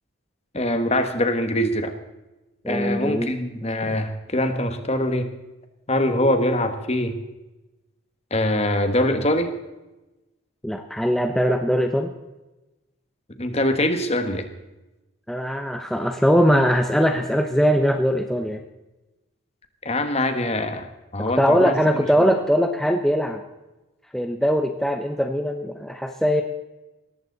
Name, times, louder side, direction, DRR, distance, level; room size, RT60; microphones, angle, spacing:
voice 1, 0.5-1.9 2.7-5.3 5.9-7.2 8.3-9.5 13.4-14.5 19.8-20.9 21.1-21.7, left 1 dB, 30° left, 8 dB, 1.5 m, -23 dB
voice 2, 2.6-3.3 3.8-4.0 10.6-12.1 15.3-18.6 21.4-23.4 24.1-26.4, equal, ahead, 5 dB, 0.8 m, -21 dB
18.5 x 14.5 x 4.1 m, 1.0 s
head